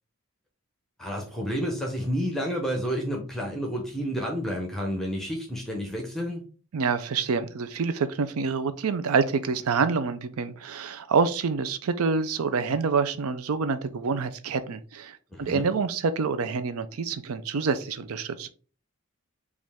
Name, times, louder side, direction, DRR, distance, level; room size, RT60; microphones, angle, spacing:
voice 1, 1.0-6.4 15.3-15.6, equal, ahead, 0.7 m, -30 dB
voice 2, 6.7-18.5, right 5 dB, 80° right, 0.5 m, -27 dB
5.1 x 2.5 x 3.5 m
head